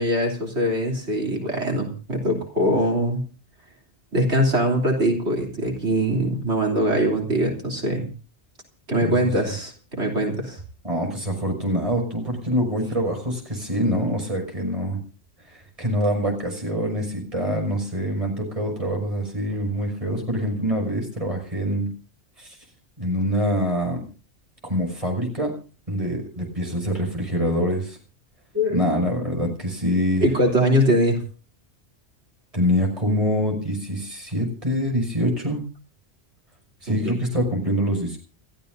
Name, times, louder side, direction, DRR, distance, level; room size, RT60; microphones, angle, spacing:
voice 1, 0.0-3.2 4.1-8.1 8.9-10.6 28.5-28.8 30.2-31.2 36.9-37.2, equal, 70° right, 1 dB, 3.6 m, -22 dB
voice 2, 9.0-9.3 10.8-15.0 15.5-21.9 22.4-22.6 23.0-24.0 24.6-25.5 25.9-28.0 28.7-30.3 32.5-35.6 36.8-38.2, equal, 30° right, 1 dB, 6.1 m, -25 dB
29.5 x 14.0 x 2.6 m, 0.35 s
omnidirectional pair, 1.2 m